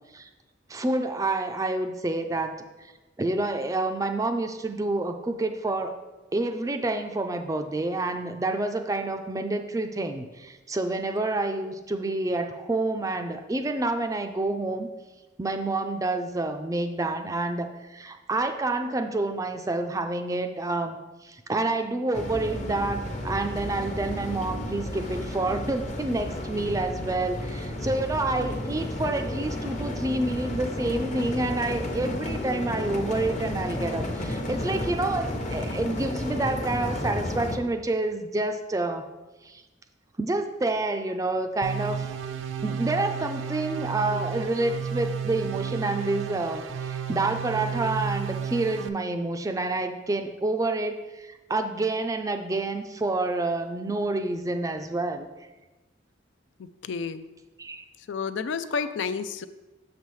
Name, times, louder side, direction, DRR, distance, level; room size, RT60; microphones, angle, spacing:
voice 1, 0.7-2.9 3.2-5.9 6.3-14.9 15.4-21.0 21.2-39.1 39.4-39.6 40.2-42.1 42.6-55.3 57.6-57.8, right 2 dB, 15° right, 7 dB, 0.4 m, -28 dB
sound 1, 22.1-37.6, left 1 dB, 40° left, 0.7 m, -32 dB
sound 2, 41.6-48.9, right 7 dB, 85° right, 0.4 m, -32 dB
voice 2, 56.6-57.3 58.0-59.5, left 5 dB, 75° left, 11 dB, 0.4 m, -31 dB
6.8 x 6.4 x 3.1 m, 1.1 s
head